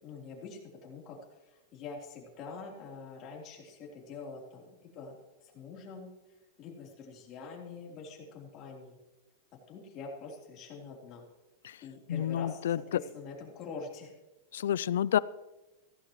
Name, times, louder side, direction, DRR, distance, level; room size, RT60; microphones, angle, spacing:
voice 1, 0.0-1.2 1.5-6.1 6.6-9.0 9.7-11.2 11.8-14.1, left 4 dB, 35° left, -1 dB, 3.7 m, -45 dB
voice 2, 12.1-13.0 14.5-15.2, left 10 dB, 85° left, 20 dB, 0.4 m, -29 dB
16.0 x 15.0 x 3.2 m, 1.1 s
supercardioid pair, 140°, 0 cm